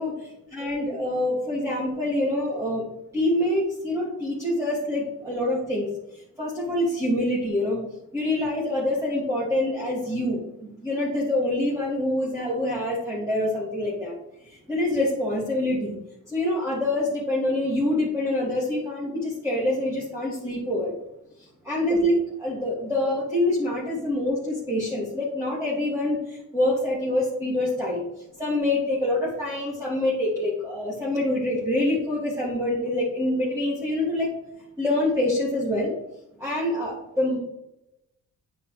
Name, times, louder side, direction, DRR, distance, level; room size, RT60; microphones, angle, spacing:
voice 1, 0.0-2.8 3.1-7.8 8.1-14.2 14.4-16.0 16.3-21.0 21.4-34.3 34.8-35.9 36.4-37.4, left 1 dB, 10° right, -7 dB, 2.5 m, -26 dB
9.3 x 4.9 x 3.4 m, 0.86 s
cardioid pair, 90°, 34 cm